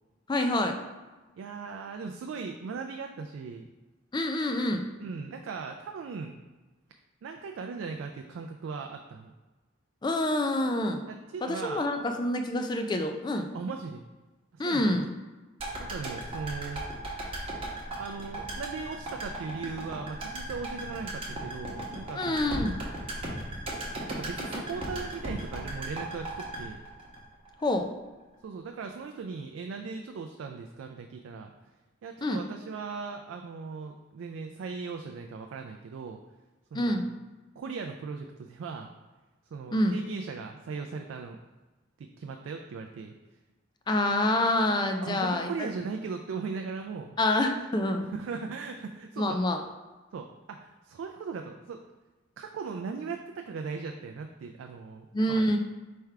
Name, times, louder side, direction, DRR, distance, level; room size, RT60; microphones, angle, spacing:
voice 1, 0.3-0.8 4.1-4.8 10.0-11.0 11.4-13.5 14.6-15.1 22.1-22.8 27.6-27.9 32.2-32.4 36.7-37.1 39.7-40.0 43.9-45.5 47.2-48.1 49.2-49.6 55.1-55.6, left 1 dB, 20° left, 5 dB, 0.3 m, -27 dB
voice 2, 1.4-3.7 5.0-6.3 7.2-9.3 11.1-11.9 13.5-14.0 14.5-15.0 15.8-16.8 18.0-22.5 24.1-26.8 28.4-31.5 32.0-36.2 36.7-37.0 37.6-38.9 39.5-41.4 42.0-43.1 45.0-47.1 48.1-49.4 50.1-51.8 52.4-55.6, right 5 dB, 90° right, 3 dB, 0.3 m, -38 dB
sound 1, 15.6-27.8 28.1-28.2, right 1 dB, 30° right, 0.9 m, -36 dB
3.5 x 3.3 x 4.5 m, 1.2 s
head